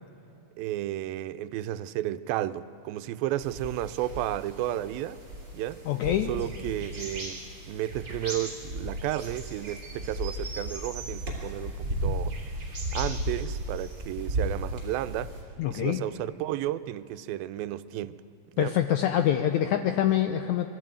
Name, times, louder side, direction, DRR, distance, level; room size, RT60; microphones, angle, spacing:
voice 1, 0.6-5.2 5.5-5.8 6.3-7.4 7.7-12.4 12.9-15.3 15.7-18.2 18.5-18.8, right 13 dB, 85° right, 2.4 m, -32 dB
sound 1, 3.4-15.4, right 1 dB, 20° right, 3.7 m, -35 dB
voice 2, 5.9-6.3 15.6-16.0 18.6-20.7, left 11 dB, 80° left, 1.7 m, -25 dB
23.0 x 13.0 x 9.0 m
omnidirectional pair, 4.1 m